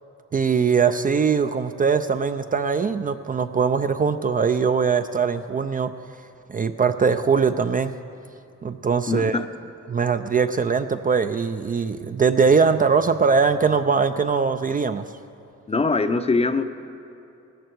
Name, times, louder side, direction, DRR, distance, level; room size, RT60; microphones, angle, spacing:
voice 1, 0.3-5.9 6.5-7.9 8.6-9.4 9.9-15.1, right 5 dB, 30° right, 9 dB, 0.5 m, -21 dB
voice 2, 9.1-9.4 15.7-16.6, left 3 dB, 20° left, 10 dB, 0.6 m, -22 dB
16.5 x 13.5 x 4.6 m, 2.8 s
cardioid pair, 90°, 30 cm